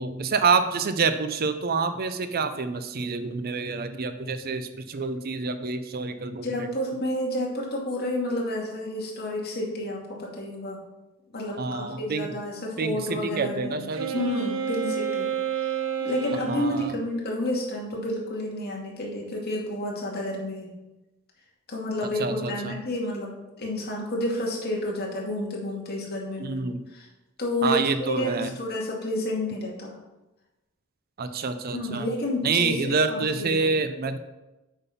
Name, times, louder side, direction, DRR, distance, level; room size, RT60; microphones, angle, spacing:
voice 1, 0.0-6.5 11.6-12.3 12.8-14.1 16.5-16.9 22.2-22.8 26.4-26.8 27.6-28.5 31.2-32.1 32.4-34.2, right 4 dB, 45° right, 10 dB, 0.5 m, -27 dB
voice 2, 6.4-10.8 11.3-13.9 14.1-15.3 15.6-15.7 16.0-20.8 21.7-23.3 23.6-26.6 26.9-27.1 27.4-30.0 31.7-33.7, left 1 dB, 45° left, -2 dB, 2.3 m, -30 dB
Wind instrument woodwind instrument, 13.9-16.8, right 7 dB, 65° right, 0.9 m, -29 dB
8.1 x 5.4 x 5.6 m, 1.0 s
head